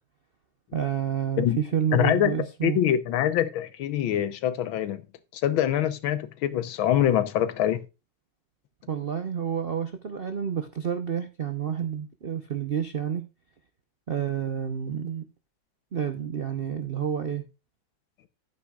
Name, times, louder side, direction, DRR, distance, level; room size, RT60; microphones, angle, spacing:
voice 1, 0.7-2.8 8.9-13.3 14.1-15.3 15.9-17.5, right 8 dB, 65° right, 0.5 m, -29 dB
voice 2, 1.9-2.3 2.6-5.0 5.3-7.8, left 11 dB, 90° left, 1.7 m, -24 dB
11.5 x 9.0 x 2.4 m
omnidirectional pair, 2.1 m